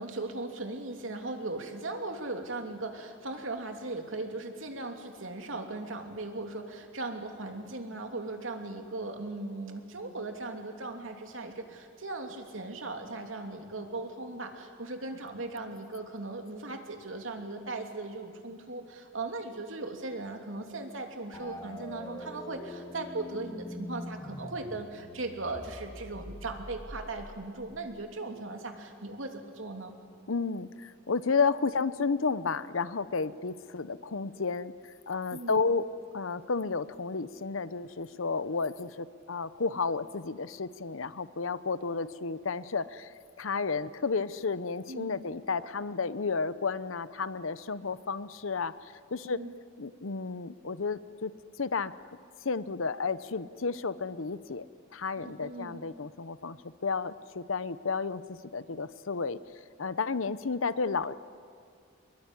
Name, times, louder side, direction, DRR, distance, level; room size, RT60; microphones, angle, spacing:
voice 1, 0.0-29.9 35.3-35.6 44.9-45.2 49.2-49.5 55.2-55.8, right 2 dB, 80° right, 4 dB, 3.0 m, -38 dB
sound 1, 21.3-28.0, left 1 dB, 20° left, 1.8 m, -44 dB
voice 2, 30.3-35.9 36.1-49.4 49.8-51.3 51.6-51.9 52.4-54.7 54.9-56.6 56.8-59.4 59.8-61.1, left 4 dB, 90° left, 15 dB, 0.8 m, -32 dB
24.5 x 22.0 x 10.0 m, 2.3 s
head